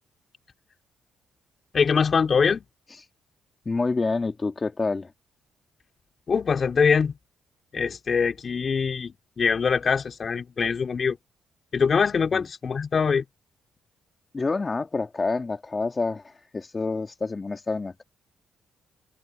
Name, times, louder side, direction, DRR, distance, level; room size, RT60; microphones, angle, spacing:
voice 1, 1.7-2.7 6.3-7.2 7.7-11.2 11.7-13.2, left 5 dB, 45° left, 4.3 m, -23 dB
voice 2, 3.7-5.1 12.3-12.4 14.3-18.0, left 3 dB, 25° left, 2.2 m, -28 dB
cardioid pair, 90°, 0 cm